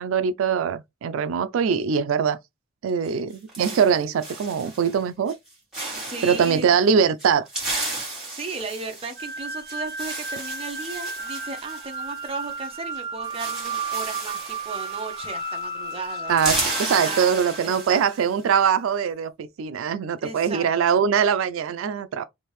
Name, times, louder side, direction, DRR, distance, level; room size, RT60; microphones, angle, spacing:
voice 1, 0.0-2.4 2.8-5.4 6.2-7.5 16.3-22.3, right 7 dB, 80° right, 0.3 m, -22 dB
sound 1, 3.0-5.0 5.3-5.5 5.7-6.6 7.2-12.7 12.9-13.0 13.2-15.6 15.9-18.3, right 2 dB, 5° right, 1.7 m, -33 dB
voice 2, 6.0-6.7 8.3-16.3 17.0-18.3 20.2-21.0, right 3 dB, 30° right, 0.7 m, -36 dB
sound 2, 9.2-18.3, right 3 dB, 45° right, 1.1 m, -33 dB
3.4 x 2.6 x 3.0 m
head